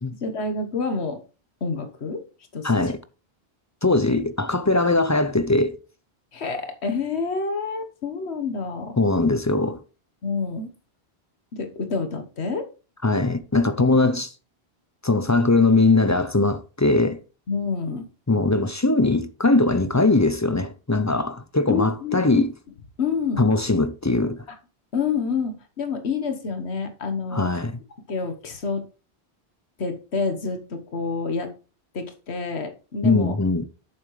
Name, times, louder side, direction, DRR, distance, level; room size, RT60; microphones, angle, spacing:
voice 1, 0.2-1.2 1.6-2.2 2.5-2.9 6.3-9.0 10.2-10.7 11.5-12.7 17.5-18.0 21.7-22.4 23.0-23.4 24.9-27.5 28.1-28.9 29.8-31.5 31.9-33.4, left 4 dB, 85° left, 1.5 m, -28 dB
voice 2, 2.6-3.0 3.8-5.8 9.0-9.8 13.0-14.3 15.0-17.2 18.3-22.5 23.4-24.4 27.3-27.8 33.0-33.6, left 2 dB, 20° left, 0.5 m, -20 dB
8.6 x 7.3 x 3.2 m
omnidirectional pair, 1.1 m